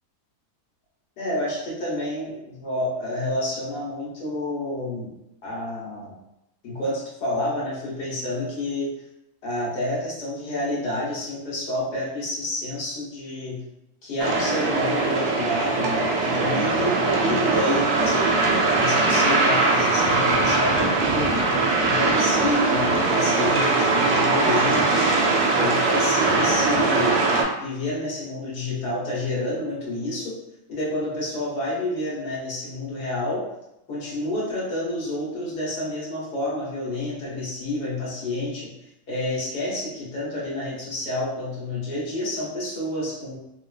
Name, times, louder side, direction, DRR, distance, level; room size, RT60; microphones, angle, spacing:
voice 1, 1.2-5.1 5.4-6.1 6.6-8.9 9.4-13.6 14.0-21.3 21.8-25.2 25.5-27.2 27.6-30.4 30.7-33.5 33.9-38.7 39.1-43.4, left 1 dB, 85° left, -6 dB, 1.6 m, -29 dB
sound 1, 14.2-27.4, right 3 dB, 80° right, 1.2 m, -21 dB
4.0 x 2.4 x 2.3 m, 0.85 s
omnidirectional pair, 1.6 m